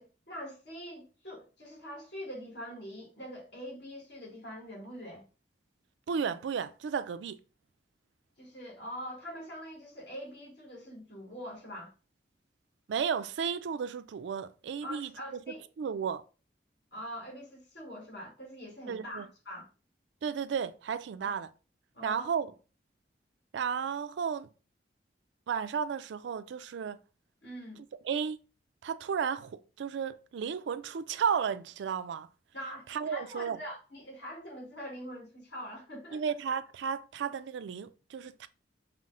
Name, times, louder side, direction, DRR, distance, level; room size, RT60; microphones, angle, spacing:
voice 1, 0.0-5.2 8.4-11.9 14.8-15.7 16.9-19.7 21.2-21.3 21.9-22.3 27.4-27.8 32.5-36.2, equal, 75° left, 1.8 m, -43 dB
voice 2, 6.1-7.4 12.9-15.4 15.8-16.2 18.9-19.3 20.2-21.5 22.0-22.5 23.5-24.5 25.5-27.0 28.0-28.4 28.8-32.3 32.9-33.6 36.1-38.5, right 7 dB, 85° right, 0.3 m, -33 dB
5.6 x 2.0 x 3.7 m
head